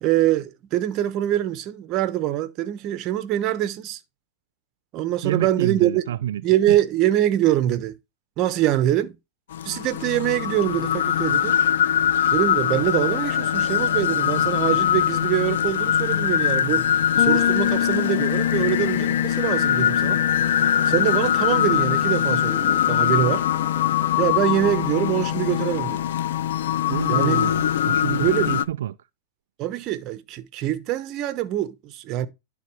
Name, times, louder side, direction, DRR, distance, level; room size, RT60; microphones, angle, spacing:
voice 1, 0.0-4.0 4.9-6.0 6.4-7.9 8.4-9.2 9.6-11.6 12.3-16.9 17.2-20.2 20.9-23.5 24.2-26.1 27.1-27.4 28.2-28.5 29.6-32.3, right 13 dB, 40° right, 1.1 m, -24 dB
voice 2, 5.2-6.8 26.9-29.0, right 11 dB, 80° right, 0.4 m, -28 dB
sound 1, 9.5-28.7, left 10 dB, 80° left, 0.5 m, -22 dB
Bass guitar, 17.2-26.8, left 11 dB, 60° left, 1.8 m, -29 dB
Wind instrument woodwind instrument, 19.6-26.2, left 1 dB, 5° left, 1.8 m, -45 dB
11.0 x 3.9 x 4.6 m
hypercardioid pair, 135°, 0 cm